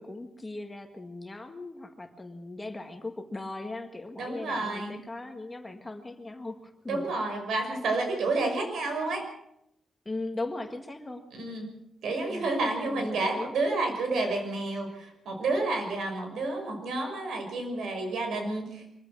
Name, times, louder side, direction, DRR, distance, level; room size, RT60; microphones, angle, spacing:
voice 1, 0.0-7.1 10.1-11.2 12.3-12.5 12.8-13.5, left 2 dB, 15° left, 5 dB, 1.6 m, -38 dB
voice 2, 4.2-4.9 6.9-9.2 11.3-11.7 12.0-18.9, right 2 dB, 75° right, 4 dB, 6.0 m, -30 dB
24.0 x 15.0 x 7.5 m, 0.80 s
wide cardioid pair, 170°, 0 cm